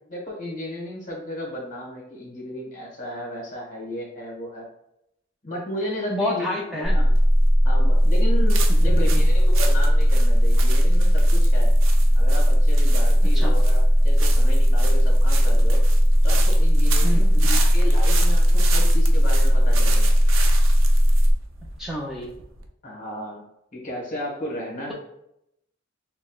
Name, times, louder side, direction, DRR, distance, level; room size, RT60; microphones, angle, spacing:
voice 1, 0.1-4.7 5.4-7.1 7.6-11.7 12.1-15.8 16.2-17.3 17.7-20.1 22.8-23.4 23.7-24.9, left 1 dB, 40° left, -2 dB, 1.2 m, -34 dB
voice 2, 6.1-7.1 8.7-9.2 13.3-13.6 17.0-17.6 21.8-22.3, left 1 dB, ahead, -3 dB, 0.4 m, -30 dB
sound 1, 6.8-21.3, equal, 40° right, 0.7 m, -17 dB
sound 2, 7.2-22.7, right 4 dB, 85° right, 0.5 m, -33 dB
6.1 x 2.0 x 2.3 m, 0.79 s
head